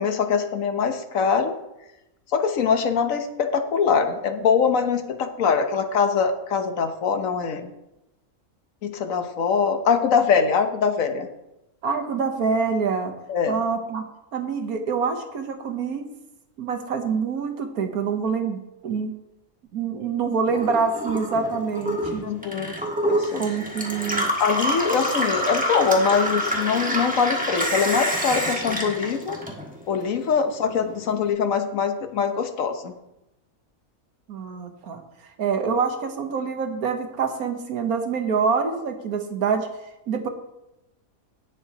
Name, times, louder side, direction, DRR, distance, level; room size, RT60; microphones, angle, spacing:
voice 1, 0.0-1.6 2.3-7.7 8.8-11.3 13.3-13.5 22.2-22.8 23.0-23.4 24.4-29.4 29.9-32.9, left 6 dB, 70° left, 7 dB, 1.3 m, -23 dB
voice 2, 11.8-13.1 13.5-14.0 14.3-16.1 16.6-19.1 19.7-22.2 23.3-24.3 34.3-35.0 35.4-39.7 40.1-40.3, right 5 dB, 85° right, 6 dB, 1.6 m, -26 dB
Gurgling / Water tap faucet / Sink (filling or washing), 20.5-30.0 30.3-31.2, equal, 5° right, 1.5 m, -27 dB
17.5 x 7.0 x 2.9 m, 0.91 s
omnidirectional pair, 1.5 m